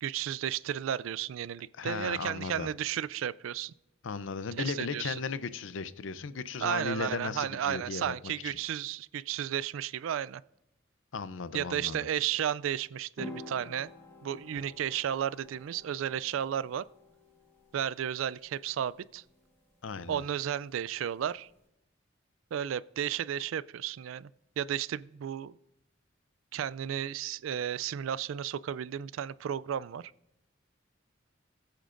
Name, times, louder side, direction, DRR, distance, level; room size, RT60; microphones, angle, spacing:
voice 1, 0.0-3.7 4.6-5.2 6.6-10.4 11.5-13.9 14.2-16.9 17.7-19.2 20.1-21.5 22.5-24.3 24.6-25.6 26.5-30.1, right 9 dB, 85° right, 0.3 m, -33 dB
voice 2, 1.8-2.7 4.0-8.1 8.4-8.5 11.1-12.0 19.8-20.3, left 5 dB, 75° left, 0.5 m, -36 dB
sound 1, 13.2-21.6, left 2 dB, 15° left, 1.4 m, -51 dB
21.0 x 9.0 x 2.5 m
head